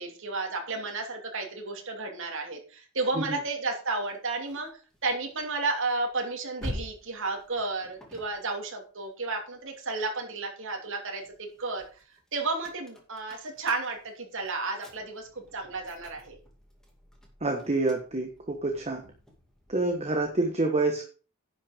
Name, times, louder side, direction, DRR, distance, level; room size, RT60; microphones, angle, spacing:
voice 1, 0.0-4.7 5.0-11.9 12.3-16.4, right 3 dB, 60° right, 2 dB, 2.7 m, -32 dB
sound 1, 3.7-10.3 10.7-20.5, left 1 dB, 5° left, 2.3 m, -47 dB
voice 2, 17.4-19.0 19.7-21.1, right 2 dB, 30° right, 3 dB, 1.3 m, -27 dB
10.5 x 5.9 x 5.2 m, 0.37 s
head